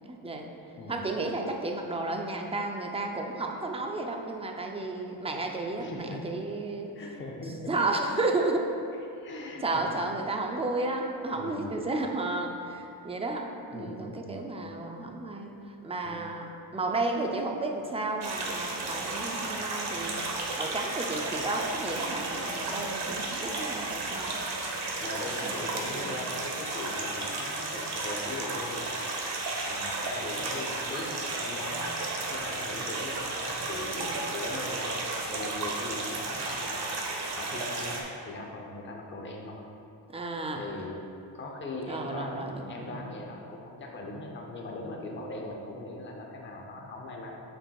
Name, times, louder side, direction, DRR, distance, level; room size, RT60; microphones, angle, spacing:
voice 1, 0.1-0.5 0.9-6.9 7.7-8.7 9.6-15.5 15.8-20.3 20.6-24.4 25.4-26.2 34.0-34.2 40.1-40.6 41.9-43.0, right 2 dB, 15° right, 2 dB, 0.4 m, -32 dB
voice 2, 5.8-6.3 6.9-7.7 9.0-9.9 11.3-11.8 13.7-14.5 16.0-16.2 25.0-29.2 29.6-32.0 32.3-39.7 40.6-41.0 41.3-47.4, left 2 dB, 25° left, 0 dB, 0.6 m, -40 dB
sound 1, 18.2-38.0, right 2 dB, 55° right, 1.1 m, -33 dB
8.8 x 7.0 x 2.3 m, 2.7 s
wide cardioid pair, 155°, 47 cm